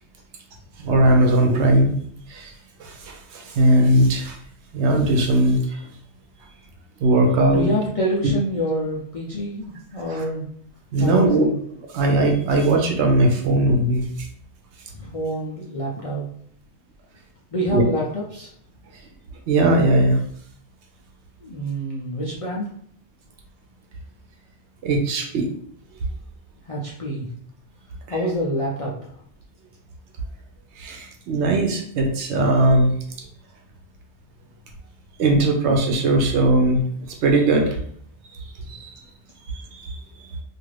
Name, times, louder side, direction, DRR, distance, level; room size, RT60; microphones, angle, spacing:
voice 1, 0.8-1.9 2.3-2.5 2.8-4.4 4.7-5.6 7.0-7.7 10.9-11.5 11.9-14.1 17.7-17.8 19.5-20.2 24.8-25.5 30.8-32.9 35.2-36.8 37.1-37.8 38.7-38.9 39.8-40.0, right 1 dB, 75° right, 3 dB, 0.9 m, -19 dB
voice 2, 7.5-10.5 11.0-11.6 14.9-16.3 17.5-18.5 21.4-22.7 26.6-27.3 28.1-29.1 38.6-38.7, equal, 55° left, -5 dB, 0.3 m, -27 dB
2.5 x 2.4 x 3.2 m, 0.62 s
omnidirectional pair, 1.2 m